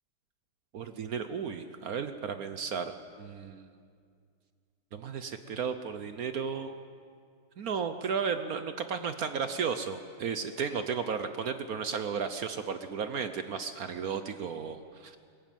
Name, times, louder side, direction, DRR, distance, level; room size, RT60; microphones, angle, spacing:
voice 1, 0.7-2.9 3.2-3.7 4.9-6.7 7.6-15.2, right 6 dB, 65° right, 9 dB, 0.9 m, -34 dB
21.0 x 14.5 x 9.1 m, 2.2 s
omnidirectional pair, 2.4 m